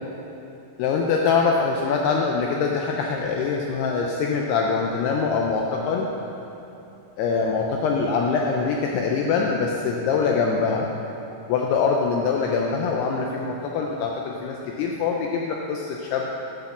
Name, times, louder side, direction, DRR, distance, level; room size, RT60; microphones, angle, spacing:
voice 1, 0.8-6.1 7.2-10.9 11.5-16.4, left 5 dB, 90° left, 0 dB, 2.3 m, -24 dB
8.0 x 6.7 x 7.1 m, 2.9 s
omnidirectional pair, 5.3 m